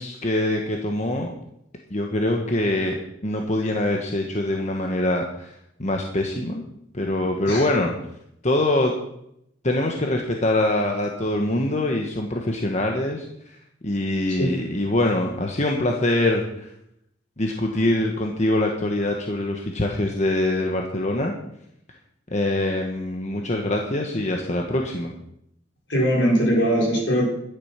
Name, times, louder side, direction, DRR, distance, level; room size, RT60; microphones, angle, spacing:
voice 1, 0.0-1.3 1.9-5.5 5.8-6.6 6.9-7.9 8.4-8.9 9.6-13.3 13.8-16.7 17.4-21.3 22.3-25.1, left 1 dB, 40° left, 1 dB, 1.4 m, -24 dB
voice 2, 25.9-27.2, equal, 70° left, -3 dB, 5.8 m, -20 dB
12.5 x 10.5 x 5.9 m, 0.77 s
head